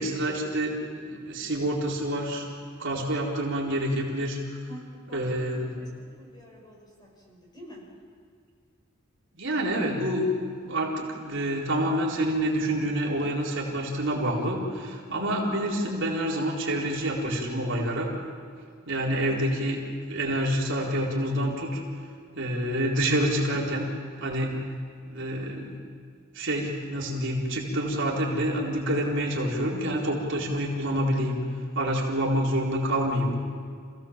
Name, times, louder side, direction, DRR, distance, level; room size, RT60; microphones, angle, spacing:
voice 1, 0.0-2.5 2.8-4.6 5.1-5.7 9.4-10.3 10.7-18.1 18.9-19.8 20.1-21.8 22.4-23.9 24.2-24.5 25.1-25.7 26.3-31.4 31.7-33.4, right 1 dB, 60° right, -3 dB, 4.1 m, -27 dB
voice 2, 4.7-5.2 5.8-5.9 6.2-7.8 15.1-15.5, left 1 dB, 20° left, -2 dB, 5.9 m, -43 dB
28.0 x 17.0 x 7.3 m, 2.1 s
head